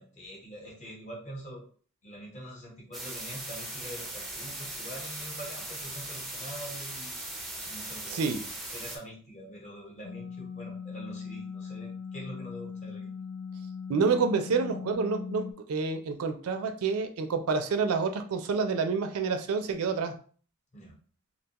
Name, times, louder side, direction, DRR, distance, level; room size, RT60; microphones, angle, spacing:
voice 1, 0.0-1.6 2.0-8.2 8.7-13.1 20.7-21.0, equal, 35° left, -2 dB, 0.9 m, -44 dB
sound 1, 2.9-9.0, right 1 dB, ahead, 0.4 m, -39 dB
voice 2, 8.1-8.4 13.9-20.2, right 5 dB, 70° right, 7 dB, 0.4 m, -28 dB
sound 2, 10.0-15.5, left 6 dB, 85° left, 0.4 m, -39 dB
2.5 x 2.2 x 2.8 m, 0.42 s
head